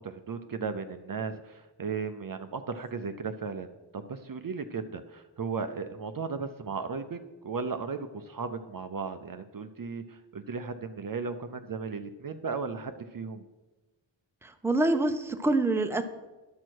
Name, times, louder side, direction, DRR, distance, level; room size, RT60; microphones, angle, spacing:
voice 1, 0.0-13.4, right 5 dB, 50° right, 8 dB, 0.5 m, -36 dB
voice 2, 14.4-16.0, right 2 dB, 5° right, 7 dB, 0.6 m, -26 dB
10.5 x 6.2 x 4.5 m, 1.1 s
wide cardioid pair, 60°, 45 cm